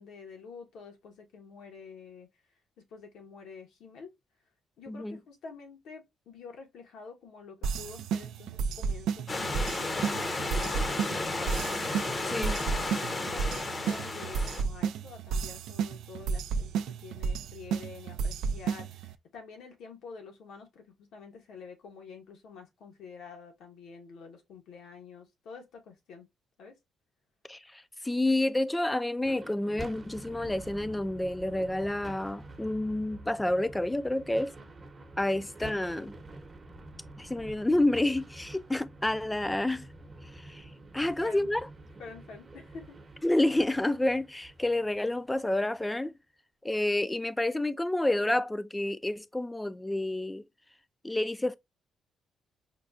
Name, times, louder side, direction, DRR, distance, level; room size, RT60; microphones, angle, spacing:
voice 1, 0.0-2.3 2.8-4.1 4.8-11.6 12.9-26.3 26.6-26.8 35.3-35.5 41.0-41.5 42.0-43.0, left 5 dB, 80° left, 1.2 m, -48 dB
voice 2, 4.9-5.2 12.3-12.6 27.5-34.5 35.2-36.1 37.2-39.9 40.2-41.6 43.2-46.1 46.6-50.4 51.0-51.6, left 1 dB, 10° left, 0.3 m, -29 dB
sound 1, 7.6-19.1, right 6 dB, 85° right, 0.3 m, -33 dB
Stream / Liquid, 9.3-14.6, left 2 dB, 30° left, 0.7 m, -33 dB
sound 2, 29.2-45.6, right 2 dB, 30° right, 0.9 m, -48 dB
5.1 x 2.2 x 2.4 m
cardioid pair, 90°, 0 cm